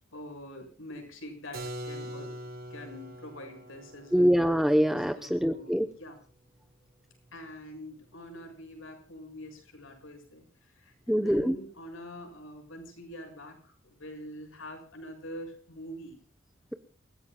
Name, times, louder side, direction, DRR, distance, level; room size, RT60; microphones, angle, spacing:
voice 1, 0.1-2.4 2.7-4.4 5.0-6.2 7.3-16.2, left 1 dB, 70° left, 4 dB, 6.9 m, -45 dB
Keyboard (musical), 1.5-7.2, right 1 dB, 50° right, 3.6 m, -44 dB
voice 2, 4.1-5.9 11.1-11.6, equal, ahead, 7 dB, 0.8 m, -24 dB
28.5 x 16.5 x 2.3 m, 0.38 s
head